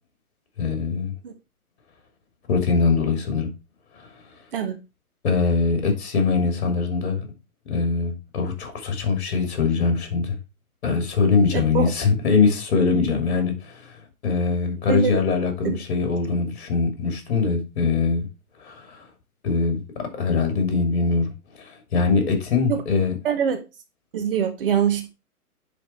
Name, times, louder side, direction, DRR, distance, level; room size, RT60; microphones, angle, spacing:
voice 1, 0.6-1.1 2.5-3.5 3.9-4.1 5.2-7.3 7.7-10.4 10.8-18.3 18.6-19.1 19.4-21.3 21.6-23.1, left 4 dB, 45° left, 2.9 m, -22 dB
voice 2, 11.5-11.9 14.9-15.2 15.6-15.8 22.7-22.8 23.2-23.6 24.1-25.1, right 7 dB, 35° right, 1.0 m, -23 dB
9.7 x 4.1 x 4.5 m
figure-of-eight pair, 135°, 45 cm